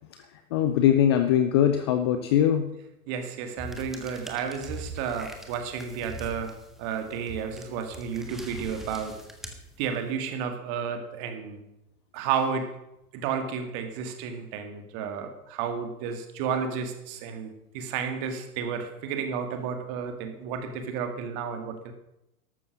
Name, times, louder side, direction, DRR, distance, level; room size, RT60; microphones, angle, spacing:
voice 1, 0.5-2.7, left 10 dB, 20° left, 8 dB, 0.5 m, -21 dB
voice 2, 3.1-9.2 9.8-11.7 12.1-12.8 13.1-21.9, right 6 dB, 30° right, 7 dB, 2.1 m, -32 dB
sound 1, 3.6-10.2, right 1 dB, ahead, 1.5 m, -43 dB
13.5 x 12.0 x 6.3 m, 0.89 s
figure-of-eight pair, 115°, 46 cm